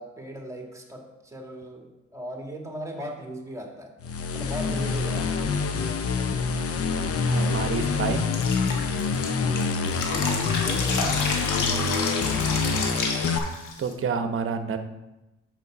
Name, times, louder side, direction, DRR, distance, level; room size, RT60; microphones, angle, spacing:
voice 1, 0.0-3.9 4.3-5.5 10.2-12.0, right 1 dB, 10° right, 1 dB, 1.7 m, -38 dB
sound 1, 4.0-13.4, left 4 dB, 50° left, 0.8 m, -26 dB
voice 2, 7.3-8.3 13.8-14.8, right 5 dB, 45° right, 8 dB, 0.9 m, -28 dB
Drip, 8.3-13.9, left 4 dB, 80° left, 1.3 m, -30 dB
6.8 x 6.2 x 4.9 m, 0.99 s
cardioid pair, 90°, 30 cm